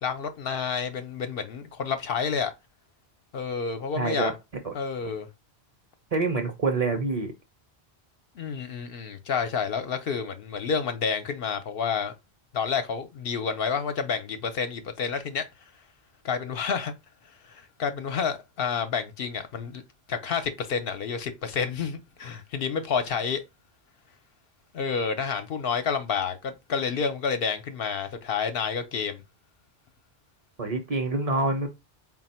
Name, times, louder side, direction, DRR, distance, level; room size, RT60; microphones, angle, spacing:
voice 1, 0.0-2.5 3.3-4.3 4.7-5.3 8.4-12.1 12.5-15.5 16.2-16.9 17.4-19.8 20.1-23.4 24.7-29.2, left 6 dB, 70° left, 0.8 m, -29 dB
voice 2, 4.0-4.3 4.6-4.7 6.1-7.3 30.6-31.7, right 3 dB, 40° right, 0.8 m, -26 dB
4.1 x 2.2 x 4.1 m
omnidirectional pair, 1.0 m